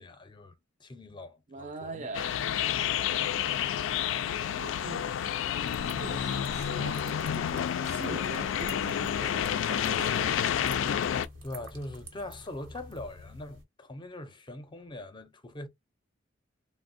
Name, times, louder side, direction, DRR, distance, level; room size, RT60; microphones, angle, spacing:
voice 1, 0.0-2.1 11.4-15.7, left 1 dB, 25° left, 0.5 m, -42 dB
voice 2, 1.5-2.4 4.4-5.3 5.9-7.5 7.8-10.5, right 3 dB, 40° right, 0.4 m, -43 dB
sound 1, 2.1-11.3, left 9 dB, 80° left, 0.3 m, -30 dB
sound 2, 5.6-13.6, equal, 85° right, 0.9 m, -46 dB
3.4 x 2.0 x 2.5 m
head